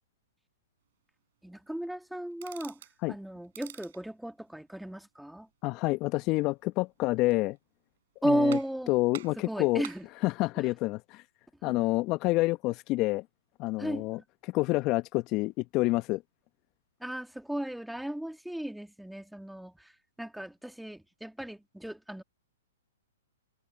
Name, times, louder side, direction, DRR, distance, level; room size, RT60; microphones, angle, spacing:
voice 1, 1.4-5.5 8.2-8.9 9.3-10.1 10.6-10.7 11.6-11.8 13.8-14.1 17.0-22.2, right 1 dB, ahead, 2.5 m, -34 dB
sound 1, 2.3-3.0 3.4-4.0 7.0-7.6 8.0-8.1 8.5-8.9 9.1-10.1, right 12 dB, 60° right, 5.0 m, -47 dB
voice 2, 5.6-7.6 8.3-8.6 8.9-9.8 10.2-11.2 11.6-13.2 13.6-16.2, left 20 dB, 35° left, 1.1 m, -28 dB
hypercardioid pair, 120°, 0 cm